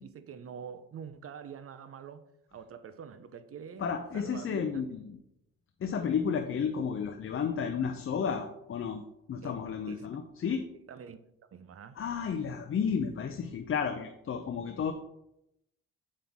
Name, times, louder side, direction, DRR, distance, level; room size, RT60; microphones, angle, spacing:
voice 1, 0.0-2.2 2.5-3.9 4.1-4.9 9.4-9.5 9.9-10.1 10.9-11.2 11.5-12.0, right 7 dB, 50° right, 0.8 m, -45 dB
voice 2, 3.8-5.2 5.8-9.0 9.3-10.6 12.0-14.9, left 6 dB, 45° left, 0.7 m, -32 dB
7.5 x 5.6 x 3.6 m
cardioid pair, 90°, 30 cm